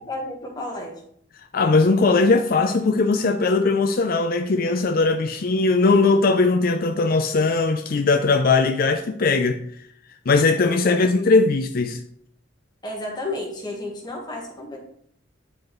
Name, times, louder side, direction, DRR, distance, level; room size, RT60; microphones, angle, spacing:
voice 1, 0.1-1.0 10.9-11.0 12.8-14.8, left 2 dB, 20° left, -1 dB, 1.4 m, -32 dB
voice 2, 1.5-9.7 10.3-12.0, left 3 dB, 50° left, 6 dB, 0.4 m, -19 dB
9.5 x 4.7 x 3.1 m, 0.65 s
head